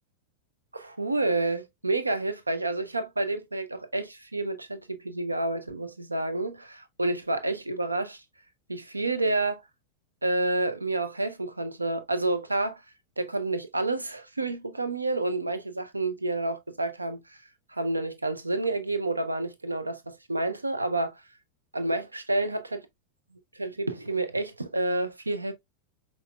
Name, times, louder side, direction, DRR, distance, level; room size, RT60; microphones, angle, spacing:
voice 1, 0.7-8.2 8.7-9.6 10.2-12.8 13.2-17.2 17.7-21.2 21.7-22.8 23.5-25.5, right 2 dB, 80° right, 0.5 m, -29 dB
5.5 x 2.4 x 2.2 m
figure-of-eight pair, 90°, 0 cm